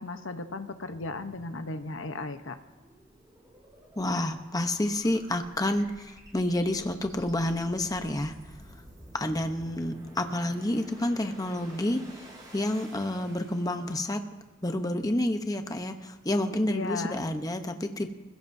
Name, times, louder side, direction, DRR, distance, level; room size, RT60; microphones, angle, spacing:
voice 1, 0.0-2.6 16.7-17.2, left 3 dB, 70° left, 8 dB, 0.9 m, -35 dB
sound 1, 0.8-14.2, right 1 dB, 20° right, 5.1 m, -51 dB
voice 2, 4.0-8.3 9.1-12.1 12.5-14.2 14.6-18.1, left 1 dB, 20° left, 6 dB, 0.9 m, -29 dB
27.0 x 16.0 x 2.7 m, 1.2 s
head